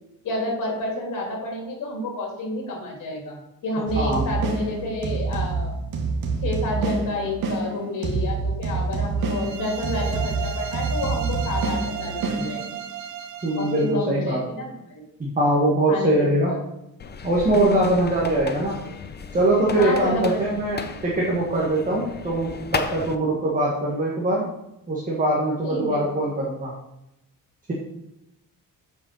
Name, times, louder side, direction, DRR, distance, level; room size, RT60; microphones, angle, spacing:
voice 1, 0.2-5.7 6.4-12.6 13.6-14.7 15.9-16.6 17.6-17.9 19.7-20.4 20.6-20.7 25.6-26.1, left 2 dB, 60° left, -1 dB, 3.4 m, -29 dB
voice 2, 3.9-4.3 13.4-14.4 15.2-16.5 17.2-18.8 19.3-24.5 24.9-26.7, right 1 dB, 25° right, -4 dB, 1.7 m, -22 dB
sound 1, 3.9-13.0, right 4 dB, 85° right, 1.6 m, -27 dB
sound 2, 9.2-14.0, right 8 dB, 60° right, 1.0 m, -35 dB
sound 3, 17.0-23.1, left 5 dB, 30° left, 0.7 m, -34 dB
7.9 x 5.4 x 6.4 m, 0.88 s
cardioid pair, 155°, 34 cm